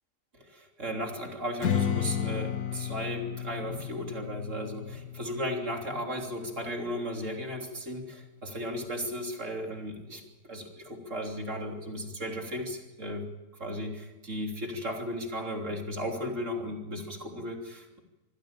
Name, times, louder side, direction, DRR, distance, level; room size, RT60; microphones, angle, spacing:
voice 1, 0.3-13.3 13.6-18.0, equal, 45° right, 3 dB, 3.6 m, -35 dB
Strum, 1.6-6.8, left 9 dB, 65° left, 1.7 m, -33 dB
26.0 x 16.0 x 9.0 m, 1.1 s
omnidirectional pair, 1.8 m